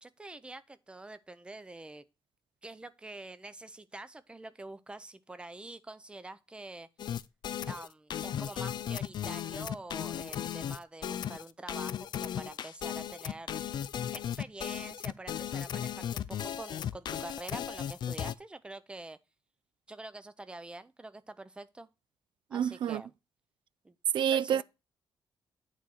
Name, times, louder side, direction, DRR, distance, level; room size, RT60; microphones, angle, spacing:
voice 1, 0.0-2.0 2.6-6.9 7.7-13.6 14.1-19.2 19.9-21.9 22.5-23.1 23.8-24.0 24.3-24.6, right 2 dB, 10° right, 0.5 m, -46 dB
sound 1, 7.0-18.3, left 9 dB, 60° left, 0.4 m, -36 dB
voice 2, 22.5-23.0 24.1-24.6, right 9 dB, 65° right, 0.3 m, -28 dB
8.9 x 4.1 x 6.1 m
wide cardioid pair, 170°, 9 cm